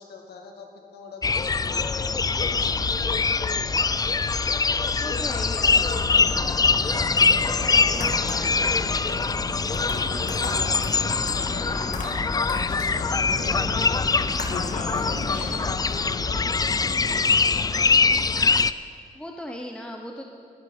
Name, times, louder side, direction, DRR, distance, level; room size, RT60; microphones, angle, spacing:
voice 1, 0.0-4.1 4.9-7.1 7.7-8.4 8.9-14.2 14.5-18.2, left 3 dB, 80° left, 2 dB, 2.2 m, -42 dB
sound 1, 1.2-18.7, left 4 dB, 25° left, 0.4 m, -23 dB
voice 2, 5.0-5.8 7.4-8.6 19.1-20.2, equal, 5° left, 2 dB, 1.1 m, -38 dB
sound 2, 5.8-16.3, left 2 dB, 55° left, 2.6 m, -35 dB
21.5 x 9.5 x 5.6 m, 2.5 s
cardioid pair, 95°, 16 cm